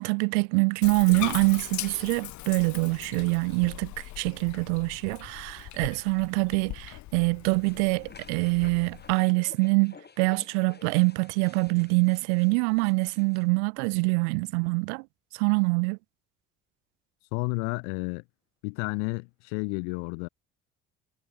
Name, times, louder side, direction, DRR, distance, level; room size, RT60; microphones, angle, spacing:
voice 1, 0.0-15.0 15.3-16.0, right 36 dB, 60° right, 0.5 m, -25 dB
Bathtub (filling or washing), 0.8-9.2, left 16 dB, 45° left, 0.9 m, -40 dB
sound 1, 7.6-13.5, left 5 dB, 25° left, 3.9 m, -52 dB
voice 2, 17.3-18.2 18.6-20.3, left 40 dB or more, 65° left, 1.5 m, -31 dB
figure-of-eight pair, 50°, 39 cm